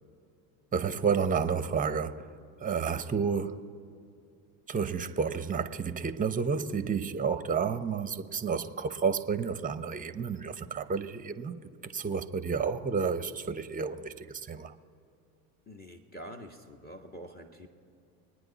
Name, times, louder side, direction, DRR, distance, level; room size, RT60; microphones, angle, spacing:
voice 1, 0.7-2.3 2.6-3.6 4.7-14.7, right 6 dB, 15° right, 0.8 m, -31 dB
voice 2, 15.7-17.7, equal, 20° left, 1.4 m, -46 dB
24.5 x 9.8 x 4.1 m
hypercardioid pair, 80°, 48 cm